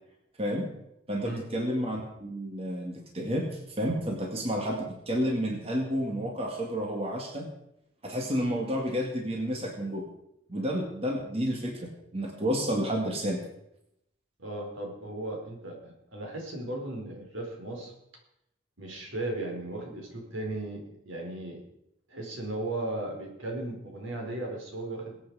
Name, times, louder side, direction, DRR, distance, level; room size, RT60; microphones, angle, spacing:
voice 1, 0.4-0.7 1.1-7.5 8.0-10.1 10.5-13.4, equal, 30° right, 1 dB, 2.0 m, -30 dB
voice 2, 14.4-17.9 18.8-21.6 22.1-25.2, right 2 dB, 80° right, 0 dB, 4.7 m, -36 dB
22.5 x 8.7 x 4.9 m, 0.81 s
head